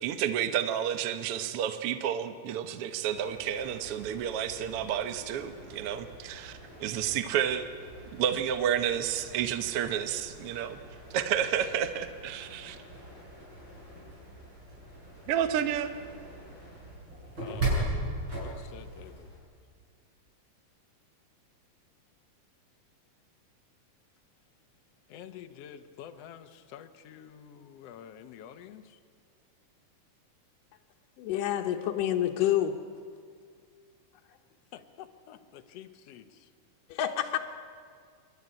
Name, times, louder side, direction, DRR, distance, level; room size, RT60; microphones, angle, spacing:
voice 1, 0.0-7.6 8.1-10.8 11.1-12.8 15.3-15.9, right 9 dB, 70° right, 10 dB, 1.4 m, -30 dB
sound 1, 3.1-19.4, right 1 dB, 35° right, 7.8 m, -40 dB
voice 2, 17.4-17.9 18.3-19.3 25.1-29.0 34.7-36.5, left 9 dB, 65° left, 8 dB, 1.8 m, -48 dB
voice 3, 31.2-32.8 36.9-37.4, left 11 dB, 80° left, 2 dB, 2.6 m, -28 dB
27.5 x 12.5 x 9.8 m, 2.1 s
omnidirectional pair, 3.8 m